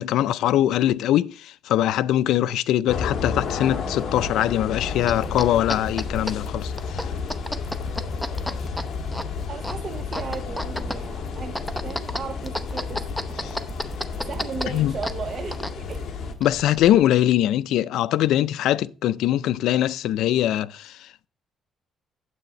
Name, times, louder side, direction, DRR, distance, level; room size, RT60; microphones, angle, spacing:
voice 1, 0.0-7.1 13.4-13.6 14.7-14.9 16.4-21.3, left 12 dB, 85° left, 0.4 m, -22 dB
sound 1, 2.9-16.3, left 5 dB, 60° left, 1.4 m, -32 dB
sound 2, 4.9-17.0, left 1 dB, 5° left, 0.7 m, -34 dB
voice 2, 9.5-13.0 13.3-13.7 14.3-16.1, right 5 dB, 45° right, 0.8 m, -36 dB
9.2 x 7.9 x 3.1 m
cardioid pair, 115°, 0 cm